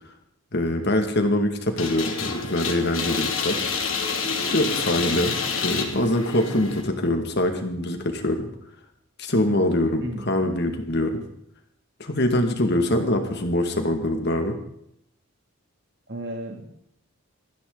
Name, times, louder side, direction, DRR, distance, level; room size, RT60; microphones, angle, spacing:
voice 1, 0.5-3.6 4.5-8.5 9.2-11.3 12.0-14.6, left 1 dB, 50° left, 5 dB, 2.3 m, -24 dB
sound 1, 1.8-6.8, left 5 dB, 70° left, 2.8 m, -28 dB
voice 2, 16.1-16.7, right 1 dB, 55° right, 3 dB, 2.9 m, -33 dB
20.0 x 14.5 x 4.1 m, 0.73 s
head